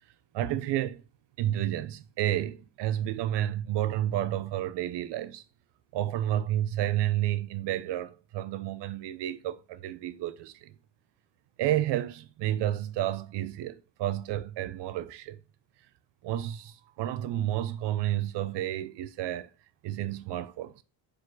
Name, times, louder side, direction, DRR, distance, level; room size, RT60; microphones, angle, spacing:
voice 1, 0.3-1.0 1.4-5.4 5.9-10.7 11.6-15.4 16.2-19.5 19.8-20.7, right 12 dB, 70° right, 0.7 m, -31 dB
5.0 x 4.1 x 4.7 m
cardioid pair, 170°, 44 cm